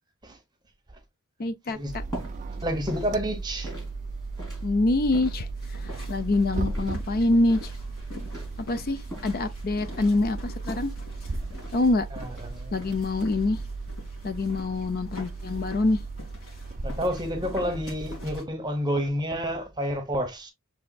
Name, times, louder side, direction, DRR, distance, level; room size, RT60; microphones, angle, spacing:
voice 1, 1.4-2.0 4.6-5.5 5.8-7.7 8.6-10.9 11.7-12.1 12.7-13.6 14.2-16.0, left 2 dB, 45° left, 0.5 m, -25 dB
sound 1, 1.7-15.7, equal, 15° left, 3.5 m, -45 dB
sound 2, 1.9-18.4, right 3 dB, 35° right, 0.4 m, -36 dB
voice 2, 2.6-3.7 12.1-12.9 16.8-20.5, equal, 20° right, 0.9 m, -29 dB
sound 3, 5.6-18.4, left 3 dB, 65° left, 2.0 m, -48 dB
6.3 x 3.4 x 2.3 m
head